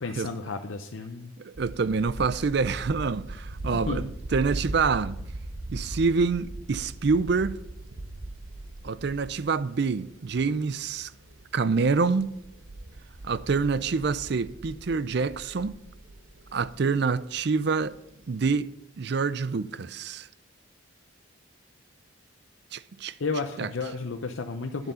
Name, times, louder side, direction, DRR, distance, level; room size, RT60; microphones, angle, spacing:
voice 1, 0.0-1.3 3.7-4.0 23.2-24.9, left 4 dB, 75° left, 0.7 m, -32 dB
voice 2, 1.4-5.2 5.7-7.6 8.8-11.1 11.5-12.3 13.2-15.8 16.5-18.0 18.3-18.7 19.0-20.3 22.7-23.1 23.6-23.7, right 4 dB, 55° right, 0.4 m, -26 dB
sound 1, 1.6-18.5, right 1 dB, 85° right, 0.9 m, -40 dB
10.0 x 7.6 x 5.6 m
head